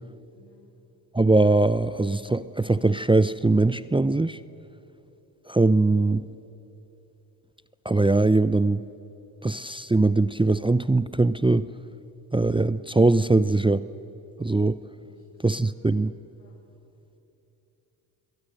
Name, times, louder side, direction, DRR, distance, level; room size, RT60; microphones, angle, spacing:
voice 1, 0.3-0.6 15.0-15.7 16.4-16.5 16.9-17.2, left 4 dB, 75° left, -1 dB, 7.9 m, -59 dB
voice 2, 1.1-4.4 5.5-6.2 7.8-8.9 9.4-11.7 12.3-13.8 14.4-14.8 15.4-16.1, right 2 dB, 10° right, 15 dB, 0.7 m, -21 dB
30.0 x 22.5 x 6.6 m, 2.9 s
hypercardioid pair, 40°, 46 cm